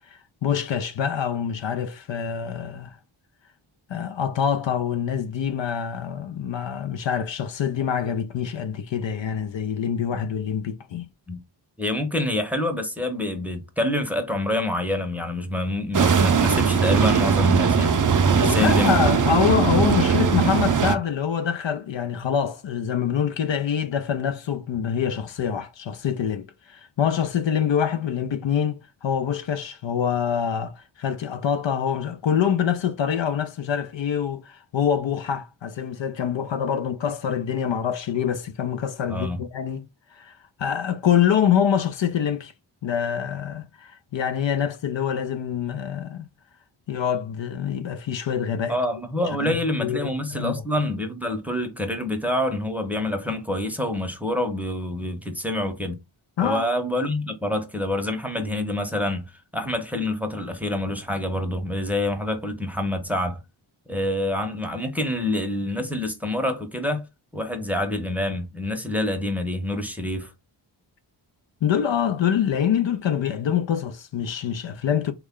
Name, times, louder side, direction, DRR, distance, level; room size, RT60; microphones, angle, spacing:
voice 1, 0.1-3.0 3.9-11.1 18.4-39.9 40.1-42.5 42.8-46.3 46.9-48.8 49.3-50.6 56.4-56.7 71.6-75.1, left 8 dB, 65° left, 0.5 m, -25 dB
voice 2, 11.8-17.9 18.3-19.1 39.1-39.4 48.7-56.0 56.4-59.3 59.5-63.4 63.9-67.0 67.3-70.3, left 1 dB, 5° right, 0.7 m, -27 dB
sound 1, 15.9-21.0, right 6 dB, 40° right, 0.5 m, -20 dB
3.1 x 2.3 x 3.6 m
cardioid pair, 50°, 49 cm